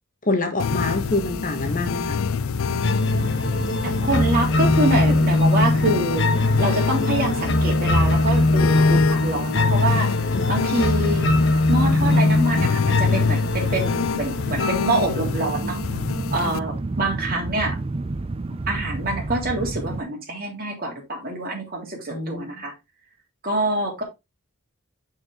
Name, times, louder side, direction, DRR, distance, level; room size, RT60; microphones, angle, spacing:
voice 1, 0.2-2.2 10.3-10.5 16.4-16.5 22.1-22.6, left 2 dB, 40° left, 1.3 m, -26 dB
sound 1, 0.6-16.6, left 7 dB, 75° left, 0.4 m, -28 dB
sound 2, 0.7-20.0, right 2 dB, 25° right, 0.4 m, -33 dB
sound 3, 2.8-15.8, left 2 dB, 55° left, 1.0 m, -21 dB
voice 2, 3.8-6.3 6.6-10.1 10.5-11.2 11.7-15.8 16.3-17.8 18.7-22.7 23.4-24.0, right 1 dB, 45° right, 3.1 m, -25 dB
6.4 x 6.2 x 3.5 m
head